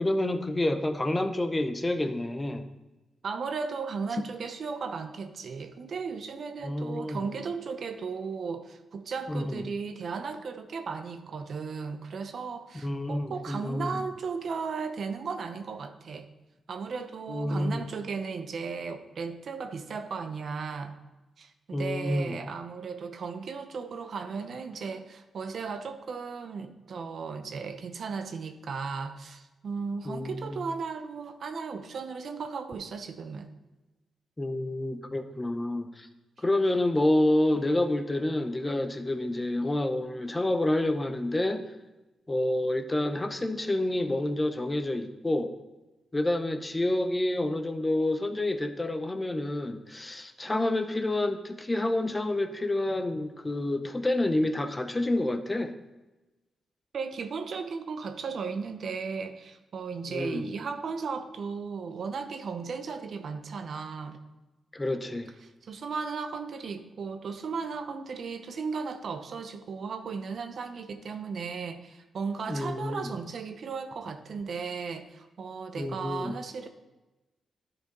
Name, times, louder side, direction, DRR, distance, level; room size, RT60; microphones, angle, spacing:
voice 1, 0.0-2.7 6.6-7.2 9.3-9.6 12.8-14.0 17.3-17.8 21.7-22.4 30.1-30.6 34.4-36.1 36.4-41.7 42.3-45.5 46.1-55.7 60.1-60.5 64.7-65.3 72.5-73.1 75.8-76.3, left 1 dB, 25° left, 8 dB, 0.8 m, -28 dB
voice 2, 3.2-16.3 16.7-20.9 21.4-33.5 56.9-64.2 65.6-76.7, right 5 dB, 65° right, 8 dB, 0.7 m, -36 dB
10.5 x 4.7 x 4.0 m, 1.1 s
supercardioid pair, 50°, 0 cm